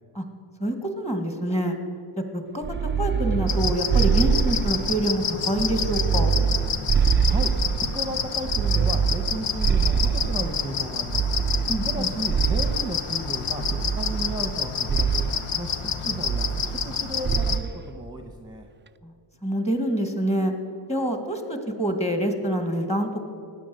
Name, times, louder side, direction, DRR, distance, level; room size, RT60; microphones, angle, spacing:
voice 1, 0.6-1.8 2.3-6.3 11.7-12.1 19.0-19.1 19.4-20.5 20.9-23.2, right 1 dB, 15° left, 6 dB, 2.0 m, -26 dB
sound 1, 2.6-5.1 5.5-8.0 8.4-10.6 11.1-13.0 13.6-14.6 14.9-15.4 16.2-17.0 17.2-17.7, right 6 dB, 25° right, 0.3 m, -24 dB
sound 2, 3.5-17.6, left 7 dB, 85° left, 1.1 m, -29 dB
voice 2, 7.9-11.4 11.8-15.2 15.5-18.7, right 1 dB, 10° right, 4 dB, 1.1 m, -34 dB
16.5 x 10.0 x 7.8 m, 2.3 s
wide cardioid pair, 110°, 49 cm